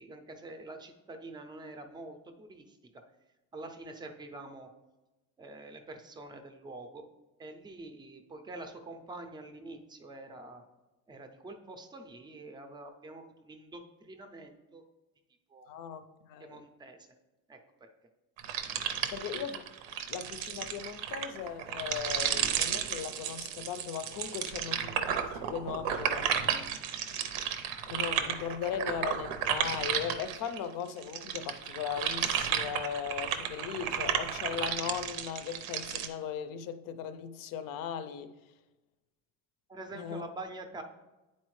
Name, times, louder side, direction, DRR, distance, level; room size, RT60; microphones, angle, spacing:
voice 1, 0.0-2.8 3.5-4.7 5.4-7.0 7.4-10.6 11.1-14.8 15.5-15.7 16.4-17.1 17.5-17.9 39.7-40.8, right 2 dB, 15° right, 0.4 m, -46 dB
voice 2, 15.7-16.7 19.1-19.7 20.1-26.8 27.9-38.3 39.9-40.2, left 8 dB, 70° left, 0.6 m, -38 dB
sound 1, 18.4-30.6 31.0-36.1, right 9 dB, 90° right, 0.7 m, -33 dB
9.6 x 4.2 x 3.1 m
cardioid pair, 160°, 35 cm